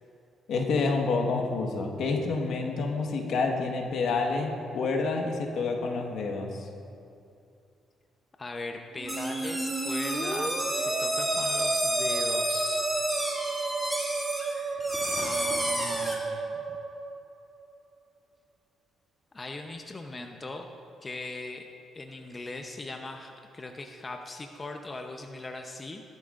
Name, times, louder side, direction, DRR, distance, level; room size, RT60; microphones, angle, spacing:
voice 1, 0.5-6.7, left 3 dB, 75° left, 2 dB, 1.4 m, -28 dB
voice 2, 8.4-12.9 15.1-16.6 19.3-20.7 21.0-21.7 21.9-26.0, left 2 dB, 25° left, 4 dB, 0.8 m, -40 dB
Musical instrument, 8.9-17.7, right 4 dB, 40° right, 0.7 m, -32 dB
sound 1, 9.1-16.2, equal, ahead, 2.5 m, -31 dB
17.0 x 12.0 x 2.6 m, 2.5 s
cardioid pair, 90°, 0 cm